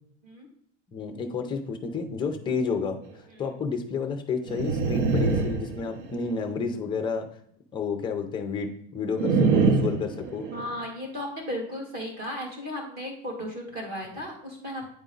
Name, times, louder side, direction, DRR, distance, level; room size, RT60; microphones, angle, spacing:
voice 1, 0.9-3.0 3.4-7.3 7.7-10.5, left 4 dB, 15° left, 5 dB, 0.5 m, -30 dB
sound 1, 4.5-6.3 9.2-10.8, right 4 dB, 75° right, 1.0 m, -25 dB
voice 2, 10.5-14.9, left 1 dB, 25° right, -1 dB, 2.3 m, -35 dB
9.2 x 4.0 x 3.8 m, 0.67 s
supercardioid pair, 170°, 37 cm